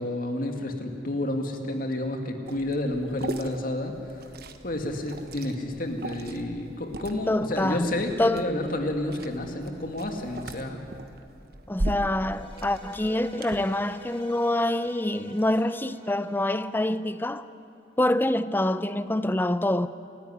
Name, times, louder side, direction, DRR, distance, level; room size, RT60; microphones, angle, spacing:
voice 1, 0.0-4.2 4.6-10.8, left 1 dB, 50° left, 2.3 m, -30 dB
Liquid, 2.5-13.6, right 1 dB, 60° right, 1.3 m, -39 dB
voice 2, 7.3-7.9 8.2-8.5 11.7-17.5 18.0-19.9, left 1 dB, 10° left, 0.5 m, -26 dB
sound 1, 12.1-17.3, right 1 dB, 35° left, 4.5 m, -48 dB
28.0 x 14.0 x 10.0 m
head